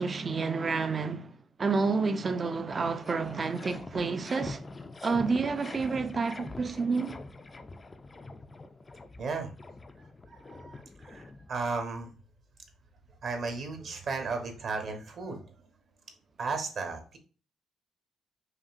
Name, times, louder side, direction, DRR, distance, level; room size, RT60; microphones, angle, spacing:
voice 1, 0.0-4.6 5.0-7.2, right 4 dB, 35° right, 0.4 m, -29 dB
sound 1, 2.4-11.8, left 3 dB, 25° left, 0.4 m, -44 dB
voice 2, 9.2-9.5 10.3-12.1 13.2-15.4 16.4-17.2, right 4 dB, 55° right, 1.0 m, -35 dB
5.0 x 2.7 x 2.5 m
cardioid pair, 90°, 0 cm